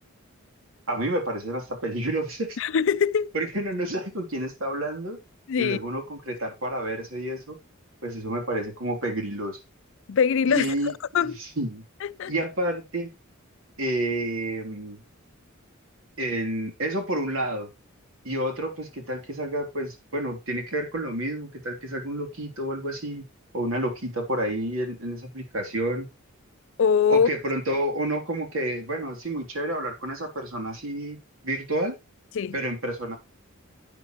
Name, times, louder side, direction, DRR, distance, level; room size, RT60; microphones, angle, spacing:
voice 1, 0.9-2.6 3.3-5.2 5.6-7.6 8.0-9.6 10.5-10.9 11.2-11.8 12.3-13.1 13.8-15.0 16.2-17.7 18.2-23.2 23.5-26.1 27.1-31.2 31.4-32.0 32.5-33.2, right 1 dB, 75° right, 3.2 m, -29 dB
voice 2, 2.6-3.3 5.5-5.8 10.1-10.7 11.1-11.4 12.0-12.3 26.8-27.3 32.3-32.6, left 6 dB, 65° left, 0.4 m, -22 dB
9.9 x 9.1 x 3.0 m
head